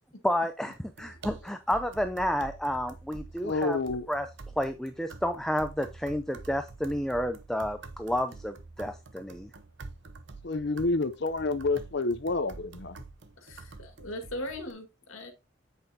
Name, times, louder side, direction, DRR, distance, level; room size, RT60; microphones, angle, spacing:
voice 1, 0.2-3.8 4.1-4.3 4.6-9.5, equal, 5° left, 0.4 m, -30 dB
sound 1, 0.7-14.7, right 3 dB, 60° right, 0.8 m, -47 dB
voice 2, 3.4-4.1 10.4-13.0, left 3 dB, 55° left, 0.7 m, -29 dB
voice 3, 13.4-15.3, left 1 dB, 90° left, 1.9 m, -39 dB
8.0 x 6.8 x 2.8 m
head